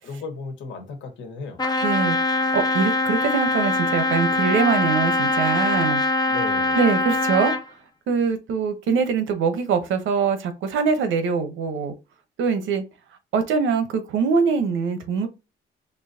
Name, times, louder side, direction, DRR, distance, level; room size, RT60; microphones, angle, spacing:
voice 1, 0.0-1.6 6.3-6.8, left 4 dB, 75° left, 1.4 m, -35 dB
Trumpet, 1.6-7.6, left 2 dB, 20° left, 0.6 m, -22 dB
voice 2, 1.8-2.2 2.5-6.0 6.7-7.5 8.1-11.9 12.4-12.8 13.3-15.3, right 5 dB, 75° right, 0.9 m, -23 dB
4.5 x 2.8 x 2.7 m
cardioid pair, 90°, 20 cm